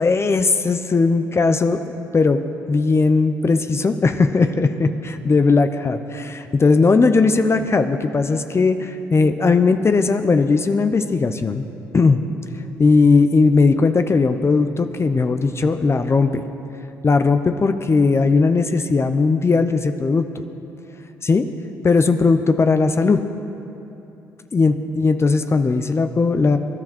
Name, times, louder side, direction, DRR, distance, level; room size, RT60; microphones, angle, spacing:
voice 1, 0.0-1.8 2.1-2.4 2.7-11.6 11.9-12.2 12.8-16.4 17.0-20.3 21.2-21.5 21.8-23.2 24.5-26.6, left 4 dB, 35° left, 9 dB, 0.8 m, -18 dB
23.5 x 10.5 x 4.4 m, 2.9 s
supercardioid pair, 60°, 8 cm